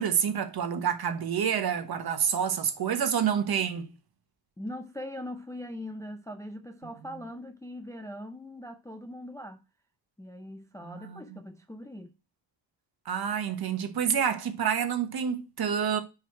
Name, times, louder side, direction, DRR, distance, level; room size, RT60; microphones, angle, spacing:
voice 1, 0.0-3.9 10.8-11.4 13.0-16.0, right 8 dB, 55° right, 1.2 m, -28 dB
voice 2, 4.6-9.6 10.2-12.2, left 1 dB, 10° left, 0.4 m, -41 dB
5.0 x 4.8 x 5.8 m
wide cardioid pair, 165°, 44 cm